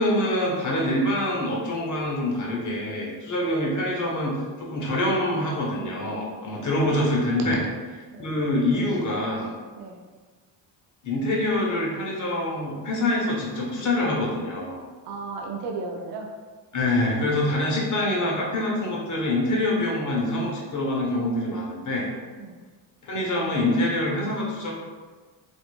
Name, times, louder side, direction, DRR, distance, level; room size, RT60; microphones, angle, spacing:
voice 1, 0.0-7.6 8.2-9.5 11.0-14.8 16.7-22.1 23.0-24.7, left 1 dB, 40° left, -3 dB, 0.9 m, -25 dB
voice 2, 15.1-16.3 22.4-22.5, right 3 dB, 85° right, 1 dB, 0.6 m, -34 dB
2.9 x 2.6 x 2.2 m, 1.4 s
hypercardioid pair, 65°, 49 cm